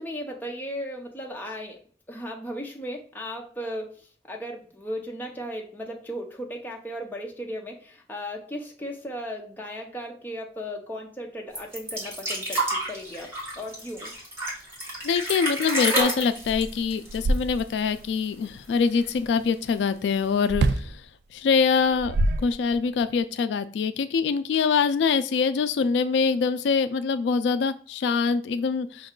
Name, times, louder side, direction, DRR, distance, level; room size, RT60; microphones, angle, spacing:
voice 1, 0.0-1.8 2.1-14.1, equal, 10° left, 0 dB, 0.7 m, -36 dB
sound 1, 11.5-18.0 18.2-18.3 18.6-19.4 20.2-20.3, right 1 dB, 15° right, 1.2 m, -30 dB
voice 2, 15.0-21.1 21.3-29.1, left 5 dB, 80° left, 11 dB, 0.3 m, -24 dB
sound 2, 16.0-16.1 16.4-17.9 20.5-21.0 21.8-23.0, right 2 dB, 65° right, 0.3 m, -26 dB
5.3 x 2.3 x 3.7 m, 0.43 s
head